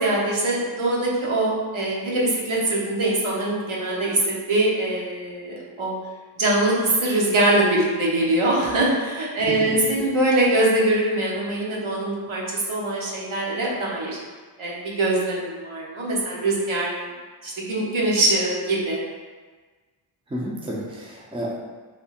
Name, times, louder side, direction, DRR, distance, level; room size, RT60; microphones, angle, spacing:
voice 1, 0.0-4.2 4.5-5.9 6.4-14.2 14.6-16.9 17.4-19.0, right 2 dB, 70° right, -4 dB, 1.0 m, -23 dB
voice 2, 9.4-9.8 20.3-21.6, equal, 10° right, -4 dB, 0.6 m, -31 dB
3.4 x 2.9 x 2.9 m, 1.4 s
wide cardioid pair, 90°, 49 cm